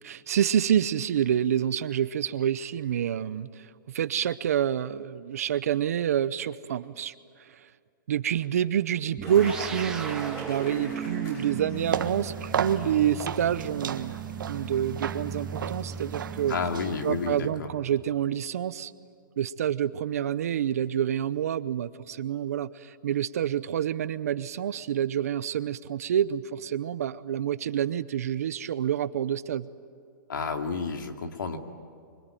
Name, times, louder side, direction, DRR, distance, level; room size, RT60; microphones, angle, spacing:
voice 1, 0.0-7.7 8.1-14.1 14.5-16.5 17.0-18.9 19.4-29.7, right 9 dB, 50° right, 15 dB, 0.7 m, -28 dB
Cheering / Applause, 9.2-13.0, equal, 25° left, 6.8 m, -43 dB
sound 1, 9.2-18.0, right 6 dB, 5° right, 0.8 m, -37 dB
sound 2, 11.8-17.4, right 7 dB, 75° right, 1.6 m, -35 dB
voice 2, 16.5-17.7 30.3-31.6, left 5 dB, 75° left, 5 dB, 2.5 m, -31 dB
25.0 x 23.5 x 9.2 m, 2.2 s
hypercardioid pair, 180°, 11 cm